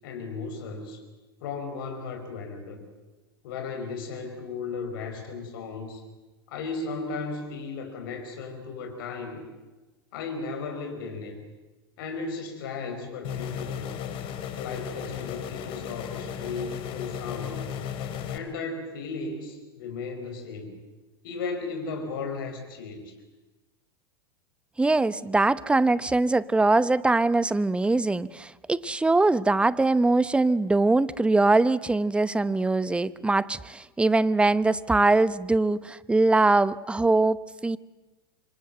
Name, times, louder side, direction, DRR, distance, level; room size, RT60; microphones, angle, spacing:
voice 1, 0.0-1.0 1.4-2.8 3.4-6.0 6.5-9.4 10.1-11.4 12.0-13.8 14.6-17.6 18.3-20.8 21.2-23.1, left 4 dB, 65° left, 4 dB, 4.9 m, -35 dB
sound 1, 13.2-18.4, left 8 dB, 45° left, 3.3 m, -35 dB
voice 2, 24.8-37.8, right 2 dB, 10° right, 17 dB, 0.9 m, -22 dB
26.5 x 25.0 x 7.8 m, 1.2 s
hypercardioid pair, 95°, 12 cm